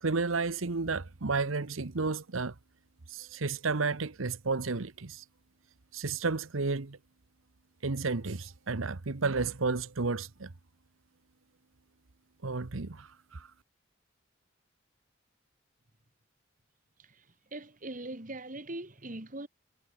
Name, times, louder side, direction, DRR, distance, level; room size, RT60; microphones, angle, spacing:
voice 1, 0.0-2.5 3.1-5.2 5.9-7.0 7.8-10.5 12.4-13.5, right 4 dB, 85° right, 1.1 m, -32 dB
voice 2, 17.0-19.5, right 2 dB, 40° right, 2.2 m, -41 dB
head